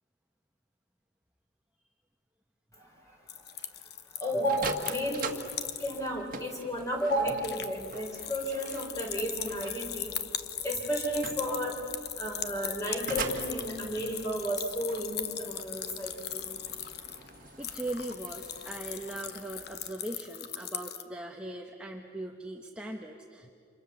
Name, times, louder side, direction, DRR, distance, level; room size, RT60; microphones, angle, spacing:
sound 1, 3.3-6.1 6.4-6.5 6.8-21.0, left 10 dB, 50° left, 1.1 m, -39 dB
voice 1, 4.2-5.2 5.8-10.1 10.6-11.8 12.2-16.4, equal, 15° left, 1 dB, 4.4 m, -32 dB
sound 2, 4.4-19.9, right 4 dB, 45° right, 1.7 m, -44 dB
voice 2, 17.6-23.5, right 1 dB, 5° right, 1 dB, 1.1 m, -40 dB
30.0 x 27.0 x 7.1 m, 2.5 s
head